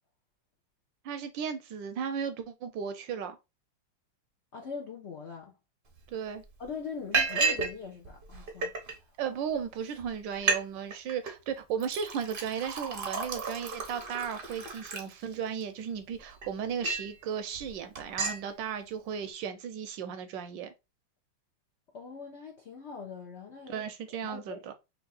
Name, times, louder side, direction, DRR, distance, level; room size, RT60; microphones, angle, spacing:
voice 1, 1.0-3.4 6.1-6.4 9.2-20.7 23.7-24.7, right 7 dB, 75° right, 1.1 m, -35 dB
voice 2, 4.5-5.5 6.6-9.1 21.9-23.8 24.2-24.7, left 5 dB, 80° left, 0.6 m, -42 dB
Liquid, 6.0-6.1 6.4-6.7 7.1-7.7 8.0-8.9 9.6-9.7 10.0-10.1 10.3-10.6 10.9-11.3 11.8-15.6 16.1-17.1 17.5-17.7 18.0-18.4, right 4 dB, 50° right, 0.6 m, -32 dB
3.5 x 2.8 x 3.9 m
omnidirectional pair, 2.3 m